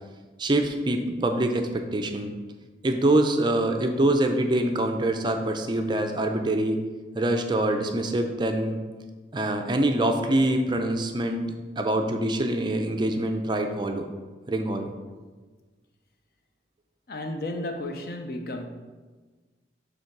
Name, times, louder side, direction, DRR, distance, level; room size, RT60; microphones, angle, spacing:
voice 1, 0.4-2.3 2.8-6.8 7.1-8.8 9.3-14.1 14.5-14.9, right 1 dB, 25° right, 0.4 m, -25 dB
voice 2, 17.1-18.7, left 1 dB, 55° left, 0.6 m, -33 dB
5.4 x 3.9 x 5.9 m
head